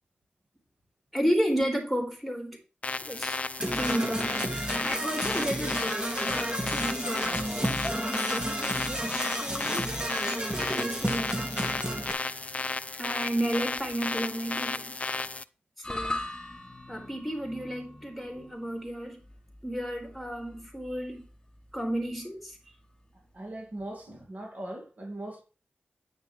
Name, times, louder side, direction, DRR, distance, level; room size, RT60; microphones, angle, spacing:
voice 1, 1.1-2.6 3.0-3.4 3.6-9.9 10.7-11.6 13.0-14.9 15.8-16.2 16.9-19.2 19.6-21.2 21.7-22.6, equal, 5° right, 4.4 m, -32 dB
sound 1, 2.8-15.4, left 3 dB, 40° left, 0.5 m, -34 dB
Percussion / Brass instrument, 3.6-12.1, equal, 25° right, 2.3 m, -32 dB
sound 2, 15.8-24.2, left 1 dB, 20° left, 3.8 m, -42 dB
voice 2, 23.3-25.4, right 1 dB, 50° right, 2.1 m, -39 dB
9.5 x 9.3 x 3.2 m
cardioid pair, 45°, 4 cm